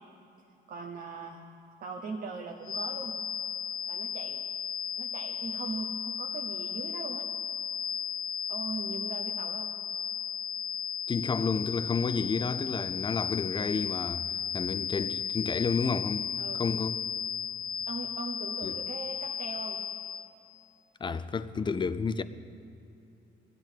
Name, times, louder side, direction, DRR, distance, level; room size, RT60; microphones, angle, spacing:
voice 1, 0.7-1.4 1.8-3.2 3.9-4.4 5.0-7.2 8.5-9.7 16.4-16.6 17.9-19.8, right 4 dB, 50° right, 0.9 m, -40 dB
sound 1, 2.6-20.4, left 7 dB, 80° left, 1.1 m, -35 dB
voice 2, 11.1-16.3 16.5-17.0 18.6-18.8 21.0-22.2, left 5 dB, 25° left, 0.4 m, -31 dB
18.0 x 12.0 x 4.5 m
cardioid pair, 135°, 20 cm